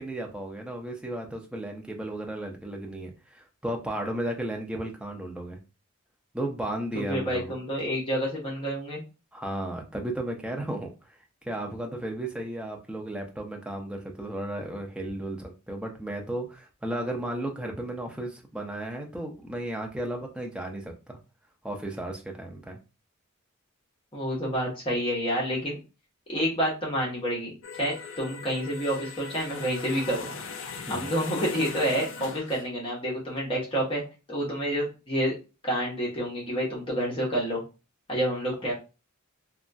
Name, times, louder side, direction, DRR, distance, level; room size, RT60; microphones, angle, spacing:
voice 1, 0.0-5.6 6.3-7.6 9.3-11.2 11.5-21.2 21.6-22.8 30.9-31.1, right 1 dB, 5° right, 1 dB, 0.4 m, -34 dB
voice 2, 7.1-9.0 24.1-25.8 26.3-30.3 30.9-34.0 34.3-35.3 35.6-37.6 38.1-38.7, equal, 25° left, -4 dB, 0.9 m, -28 dB
sound 1, 27.6-32.6, left 5 dB, 60° left, 0.4 m, -39 dB
2.9 x 2.2 x 2.5 m, 0.31 s
head